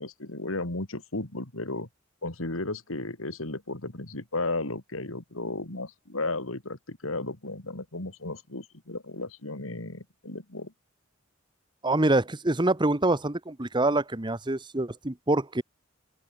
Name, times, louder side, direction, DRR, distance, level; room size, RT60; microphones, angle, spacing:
voice 1, 0.0-1.9 2.2-10.7, left 2 dB, 80° left, 3.1 m, -34 dB
voice 2, 11.8-15.6, right 2 dB, 20° right, 1.2 m, -25 dB
head